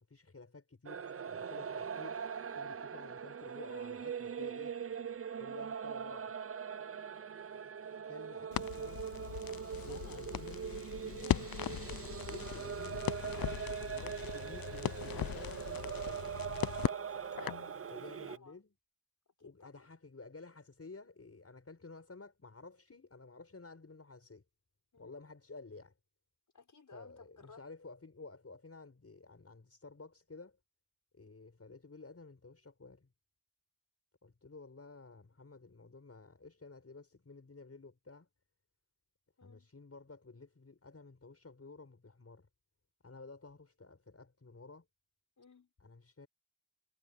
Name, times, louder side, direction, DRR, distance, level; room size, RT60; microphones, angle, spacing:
voice 1, 0.1-2.2 2.5-4.7 5.4-6.4 8.1-9.0 9.8-10.7 11.0-11.7 12.3-13.1 13.9-16.3 17.8-18.7 19.4-24.4 25.0-25.9 26.9-30.6 31.1-33.1 34.2-38.3 39.4-42.5 43.0-44.9 45.8-46.3, left 3 dB, 45° left, 7.1 m, -53 dB
sound 1, 0.9-18.4, right 7 dB, 40° right, 0.6 m, -41 dB
Crackle, 8.5-17.7, left 11 dB, 85° left, 0.6 m, -39 dB
voice 2, 9.9-10.2 16.8-17.1 17.9-18.6 19.4-19.9 24.9-25.2 26.5-27.6 39.4-39.7 45.4-45.7, left 5 dB, 60° left, 5.8 m, -59 dB
cardioid pair, 60°, 35 cm